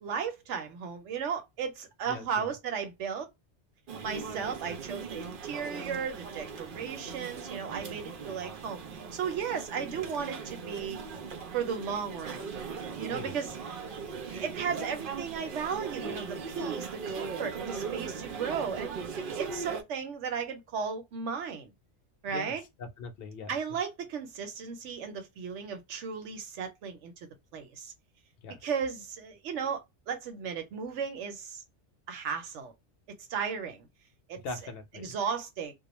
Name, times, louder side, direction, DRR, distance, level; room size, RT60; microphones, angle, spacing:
voice 1, 0.0-3.3 4.0-8.8 9.1-11.0 11.5-12.5 13.0-13.6 14.3-21.7 22.2-22.6 23.5-27.1 27.5-27.9 28.6-31.6 32.1-32.7 33.3-33.9 34.3-34.4 34.9-35.7, right 6 dB, 85° right, 1.0 m, -35 dB
voice 2, 2.1-2.4 13.1-13.3 22.3-22.5 23.0-23.5 28.4-28.6 34.4-35.2, left 3 dB, 60° left, 0.8 m, -41 dB
sound 1, 3.9-19.8, right 5 dB, 55° right, 0.7 m, -39 dB
2.3 x 2.1 x 2.9 m
omnidirectional pair, 1.2 m